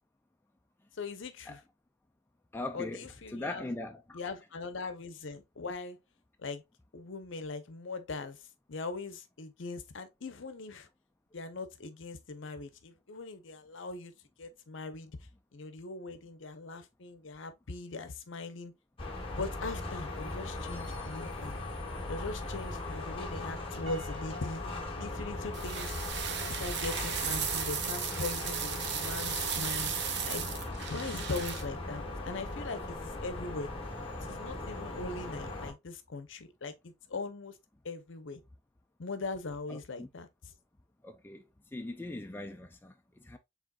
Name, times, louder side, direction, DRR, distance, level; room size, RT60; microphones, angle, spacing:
voice 1, 1.0-1.6 2.7-3.7 4.1-6.0 6.4-6.6 6.9-8.4 8.7-10.9 11.3-14.1 14.4-15.1 15.5-18.7 19.4-21.6 22.1-24.6 25.0-25.9 26.2-29.9 30.3-30.5 30.9-33.7 34.2-37.5 37.8-38.4 39.0-40.5, left 3 dB, 70° left, 0.7 m, -40 dB
voice 2, 2.5-4.2 39.7-40.1 41.0-41.4 41.7-43.4, left 2 dB, 10° left, 0.3 m, -40 dB
sound 1, 19.0-35.7, left 2 dB, 25° left, 1.3 m, -39 dB
Piano, 23.9-26.1, left 1 dB, 85° right, 1.1 m, -49 dB
sound 2, 25.5-31.6, right 7 dB, 55° right, 0.7 m, -35 dB
4.9 x 3.5 x 2.3 m
head